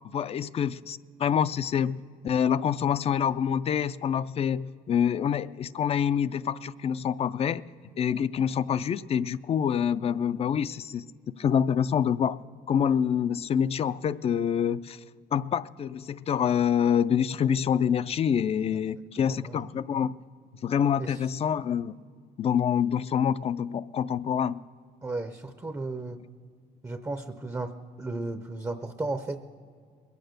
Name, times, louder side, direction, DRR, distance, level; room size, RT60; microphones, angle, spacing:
voice 1, 0.1-2.0 2.2-7.6 8.0-11.1 11.4-12.4 12.7-15.0 15.3-20.2 20.6-22.0 22.4-24.6, left 8 dB, 35° left, 17 dB, 0.3 m, -26 dB
voice 2, 19.2-19.6 21.0-21.2 25.0-26.2 26.8-29.4, right 2 dB, 15° right, 9 dB, 0.5 m, -34 dB
21.0 x 8.1 x 6.6 m, 2.1 s
cardioid pair, 110°, 17 cm